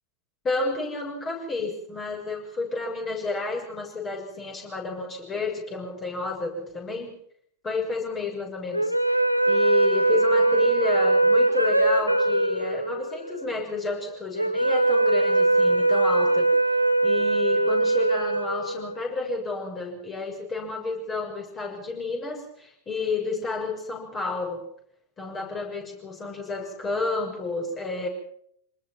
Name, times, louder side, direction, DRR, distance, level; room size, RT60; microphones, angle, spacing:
voice 1, 0.4-7.1 7.6-16.8 17.0-24.6 25.2-28.1, left 3 dB, 20° left, 1 dB, 6.9 m, -31 dB
sound 1, 8.7-19.1, right 2 dB, 90° right, 1.2 m, -22 dB
25.0 x 20.0 x 5.9 m, 0.68 s
figure-of-eight pair, 90°, 0 cm